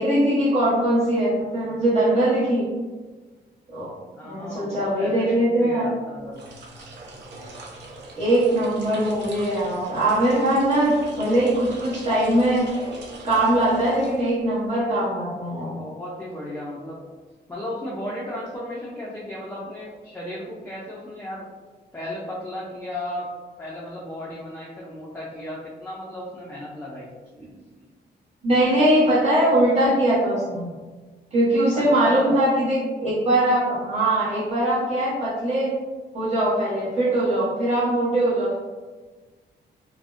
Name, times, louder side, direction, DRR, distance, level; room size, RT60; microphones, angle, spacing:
voice 1, 0.0-2.6 3.7-3.9 4.2-5.9 8.1-12.7 13.2-15.8 27.4-27.5 28.4-30.7 31.3-35.7 36.1-38.6, right 1 dB, 40° right, -8 dB, 1.1 m, -21 dB
voice 2, 4.1-6.4 15.6-17.0 17.5-21.5 21.9-23.3 23.6-27.1 31.7-32.4, left 1 dB, 10° left, -6 dB, 0.4 m, -35 dB
sound 1, 6.2-14.6, right 2 dB, 75° right, 0.5 m, -41 dB
2.5 x 2.1 x 2.4 m, 1.4 s
cardioid pair, 120°, 18 cm